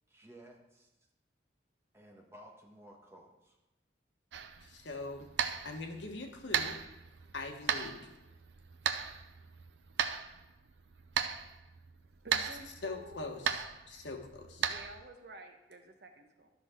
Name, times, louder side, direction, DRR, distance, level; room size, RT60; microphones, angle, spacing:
voice 1, 0.1-0.9 1.9-3.6, right 1 dB, 15° right, 0 dB, 1.3 m, -55 dB
sound 1, 4.3-15.0, right 7 dB, 80° right, 0.5 m, -37 dB
voice 2, 4.6-5.3 5.6-6.8 7.3-8.1 12.4-12.5 12.8-14.7, left 3 dB, 85° left, 3 dB, 1.3 m, -42 dB
voice 3, 12.2-13.5 14.6-16.5, right 1 dB, 60° right, 5 dB, 1.0 m, -51 dB
12.0 x 6.1 x 3.7 m, 0.99 s
head